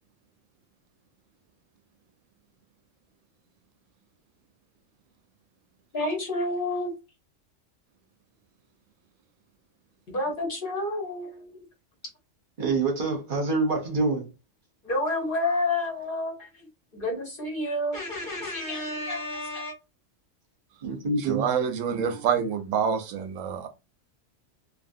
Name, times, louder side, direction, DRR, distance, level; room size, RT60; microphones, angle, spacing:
voice 1, 5.9-6.9 10.1-11.6 14.8-16.7 16.9-19.7, left 2 dB, 45° left, 1.1 m, -29 dB
voice 2, 12.6-14.2 20.8-21.4, right 3 dB, 50° right, 0.8 m, -26 dB
voice 3, 21.3-23.7, right 7 dB, 80° right, 1.0 m, -27 dB
2.7 x 2.5 x 2.6 m
omnidirectional pair, 1.3 m